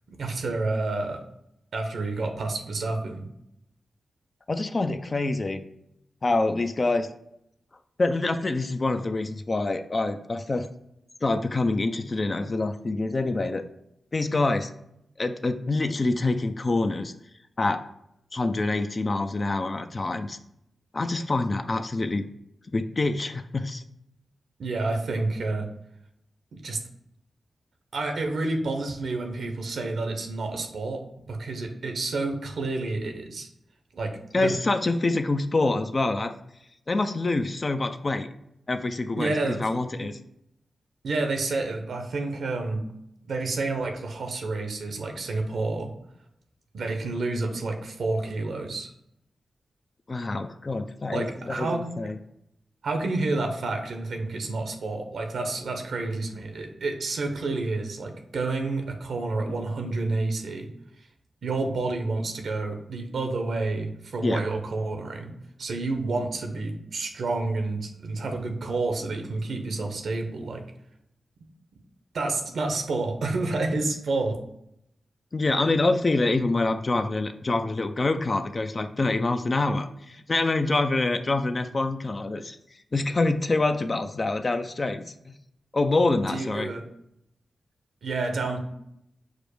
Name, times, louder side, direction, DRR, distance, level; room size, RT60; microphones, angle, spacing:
voice 1, 0.1-1.2 1.7-3.3 24.6-25.7 26.6-26.8 27.9-31.0 31.3-33.5 33.9-34.5 39.2-39.7 41.0-42.8 43.3-45.9 46.7-48.9 51.1-51.8 52.8-60.7 61.4-65.3 65.6-70.6 72.1-74.4 86.3-86.8 88.0-88.6, right 3 dB, 75° right, 4 dB, 0.7 m, -29 dB
voice 2, 4.5-5.6 6.2-7.1 8.0-10.7 11.2-13.7 14.1-14.7 15.2-17.1 17.6-17.8 18.3-20.4 20.9-22.3 22.7-23.8 34.3-36.3 36.9-38.3 38.7-40.2 50.1-52.2 64.2-64.4 75.3-82.6 82.9-85.3 85.7-86.7, left 2 dB, 45° left, 8 dB, 0.4 m, -26 dB
5.0 x 2.1 x 4.6 m, 0.77 s
cardioid pair, 50°, 0 cm